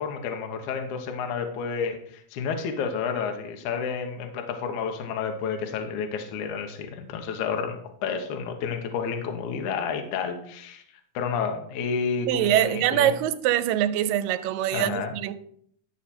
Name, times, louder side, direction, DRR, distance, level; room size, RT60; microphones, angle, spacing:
voice 1, 0.0-10.8 11.1-13.1 14.7-15.1, left 6 dB, 70° left, 2.3 m, -30 dB
voice 2, 12.3-15.3, right 12 dB, 85° right, 2.2 m, -24 dB
12.0 x 6.5 x 4.3 m
omnidirectional pair, 4.0 m